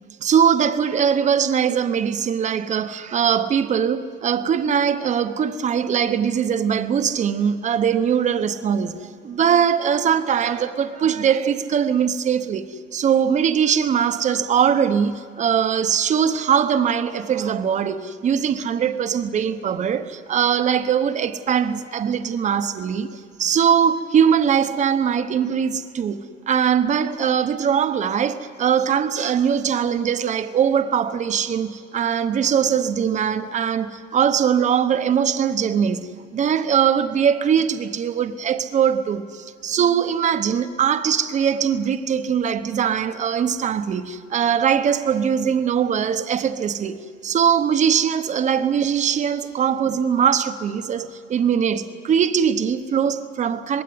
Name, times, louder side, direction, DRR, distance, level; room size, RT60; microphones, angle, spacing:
voice 1, 0.2-47.0 47.2-53.8, right 8 dB, 35° right, 0.9 m, -21 dB
21.0 x 16.5 x 9.6 m
cardioid pair, 165°, 21 cm